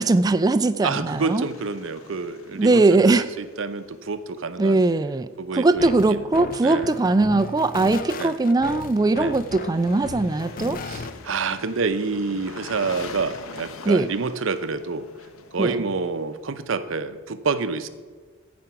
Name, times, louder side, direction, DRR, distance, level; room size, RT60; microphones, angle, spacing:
voice 1, 0.0-1.5 2.6-3.3 4.6-10.8 13.9-14.1 15.6-15.8, right 2 dB, 20° right, 13 dB, 0.3 m, -20 dB
voice 2, 0.8-4.8 5.4-6.3 6.6-7.0 8.2-8.4 9.2-9.4 10.8-15.1 15.5-17.9, right 4 dB, 65° right, 11 dB, 0.6 m, -28 dB
sound 1, 1.2-5.0 9.2-16.8, left 4 dB, 85° left, 0.9 m, -44 dB
sound 2, 5.8-11.4, left 4 dB, 40° left, 0.5 m, -35 dB
15.0 x 5.2 x 5.7 m, 1.5 s
head